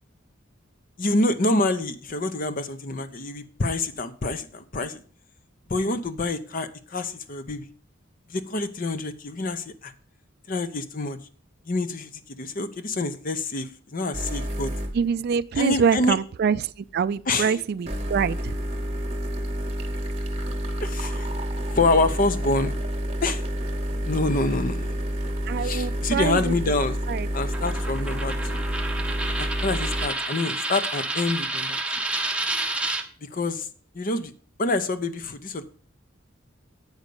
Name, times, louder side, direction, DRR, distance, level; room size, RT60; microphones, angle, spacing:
voice 1, 1.0-5.0 5.7-7.7 8.3-9.9 10.5-11.2 11.7-12.1 12.4-14.7 15.5-16.2 17.3-17.6 20.8-21.3 21.7-22.7 23.2-23.4 24.0-25.0 25.6-27.0 27.3-28.6 29.4-31.8 33.2-33.7 33.9-34.3 34.6-35.6, left 2 dB, 45° left, 0.8 m, -26 dB
sound 1, 14.1-15.1 17.9-30.1, equal, 35° right, 1.1 m, -29 dB
voice 2, 14.9-18.5 25.5-26.5 27.1-27.3, right 6 dB, 55° right, 0.3 m, -25 dB
Coin (dropping), 27.5-33.0, right 2 dB, 5° right, 0.9 m, -29 dB
8.1 x 5.1 x 6.8 m
head